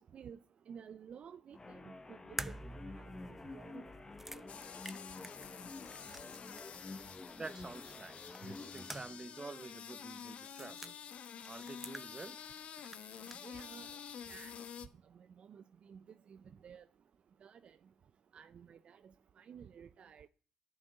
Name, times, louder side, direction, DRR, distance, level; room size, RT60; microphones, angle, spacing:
voice 1, 0.7-2.6 2.9-3.0 3.5-4.0 13.4-13.9 14.3-14.5 15.1-16.0 16.3-16.8 17.4-17.8 18.3-20.3, right 7 dB, 55° right, 0.5 m, -53 dB
sound 1, 1.5-9.0, left 3 dB, 25° left, 1.2 m, -50 dB
sound 2, 2.4-6.8 7.1-7.2 8.3-9.3 9.6-9.7 10.4-10.9 11.4-12.5 12.8-13.7, right 1 dB, 10° right, 0.8 m, -48 dB
sound 3, 4.5-14.9, left 8 dB, 60° left, 1.1 m, -49 dB
voice 2, 7.4-10.9 11.4-12.4, right 3 dB, 30° right, 1.2 m, -48 dB
10.5 x 6.5 x 8.8 m
supercardioid pair, 65°, 2 cm